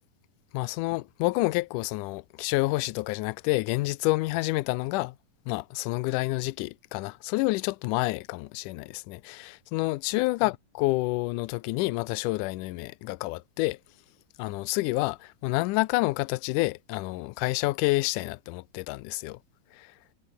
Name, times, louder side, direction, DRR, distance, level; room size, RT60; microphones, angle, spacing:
voice 1, 0.5-5.2 5.5-13.8 14.4-19.4 19.7-19.9, left 21 dB, 80° left, 2.0 m, -28 dB
omnidirectional pair, 3.9 m